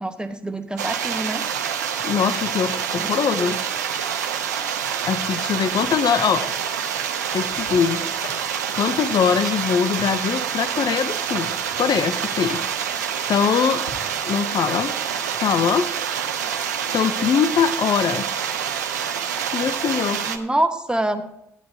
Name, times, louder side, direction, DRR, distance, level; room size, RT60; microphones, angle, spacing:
voice 1, 0.0-1.4 3.0-3.1 3.4-3.5 20.3-21.2, right 1 dB, 10° right, 7 dB, 1.1 m, -25 dB
sound 1, 0.8-20.4, right 8 dB, 85° right, 0.6 m, -27 dB
voice 2, 2.0-3.6 5.1-6.5 7.3-13.0 13.3-13.8 14.2-15.0 15.4-15.9 16.9-18.5 19.5-20.3, left 7 dB, 50° left, 12 dB, 0.6 m, -22 dB
sound 2, 5.6-14.1, left 2 dB, 85° left, 2.2 m, -45 dB
15.0 x 9.9 x 2.8 m, 0.79 s
hypercardioid pair, 45°, 9 cm